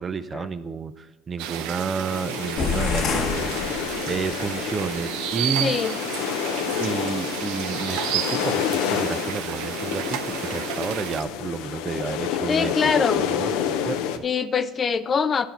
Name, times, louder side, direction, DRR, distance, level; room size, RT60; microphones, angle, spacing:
voice 1, 0.0-5.8 6.8-14.2, right 5 dB, 30° right, 12 dB, 0.5 m, -31 dB
sound 1, 1.4-11.2, right 11 dB, 80° right, 0.6 m, -32 dB
sound 2, 2.1-14.2, left 9 dB, 80° left, 0.6 m, -29 dB
sound 3, 2.6-4.4, left 6 dB, 50° left, 1.1 m, -28 dB
voice 2, 5.6-5.9 12.5-13.2 14.2-15.5, left 6 dB, 30° left, 13 dB, 0.4 m, -23 dB
11.5 x 4.4 x 5.5 m, 1.2 s
supercardioid pair, 115°, 0 cm